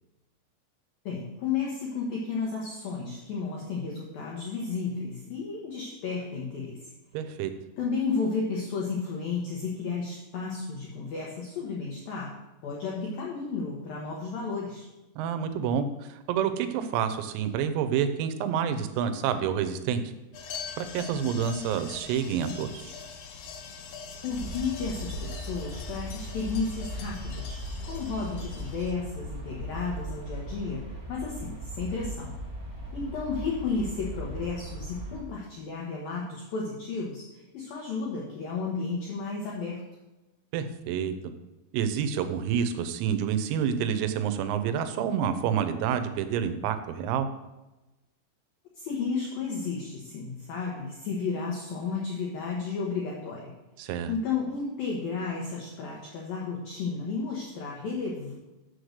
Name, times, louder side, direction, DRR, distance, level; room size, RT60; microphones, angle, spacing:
voice 1, 1.1-6.9 7.8-12.3 12.6-14.9 24.2-32.4 32.9-39.8 48.8-53.5 54.1-58.3, left 4 dB, 85° left, -3 dB, 2.0 m, -33 dB
voice 2, 7.1-7.5 15.2-20.0 20.8-22.9 40.5-41.1 41.7-47.3 53.8-54.1, right 8 dB, 90° right, 9 dB, 3.5 m, -28 dB
sound 1, 20.3-28.9, left 5 dB, 70° left, 2.7 m, -42 dB
sound 2, 24.3-35.2, right 1 dB, 40° right, 0.9 m, -38 dB
7.7 x 6.5 x 6.4 m, 1.0 s
omnidirectional pair, 6.0 m